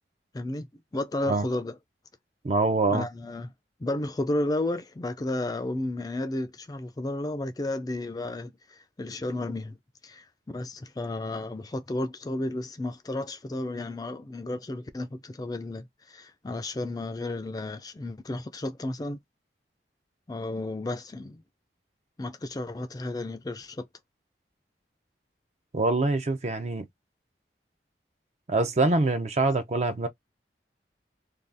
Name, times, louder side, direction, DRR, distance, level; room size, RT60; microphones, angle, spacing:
voice 1, 0.3-0.7 0.9-1.8 2.9-3.5 3.8-9.8 10.0-19.2 20.3-21.4 22.2-23.9, left 2 dB, 20° left, 0.4 m, -32 dB
voice 2, 2.4-3.1 25.7-26.9 28.5-30.1, right 3 dB, 40° right, 0.5 m, -24 dB
2.6 x 2.3 x 3.3 m
head